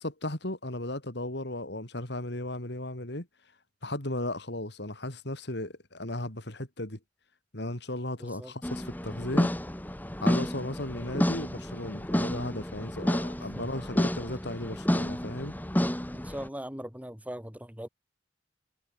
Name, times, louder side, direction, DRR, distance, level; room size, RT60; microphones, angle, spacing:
voice 1, 0.0-3.3 3.8-7.0 7.5-9.5 10.2-15.5, left 1 dB, 65° left, 4.1 m, -35 dB
voice 2, 8.2-8.5 13.5-13.7 16.1-17.9, equal, 10° right, 6.5 m, -40 dB
sound 1, 8.6-16.5, equal, 10° left, 1.2 m, -30 dB
head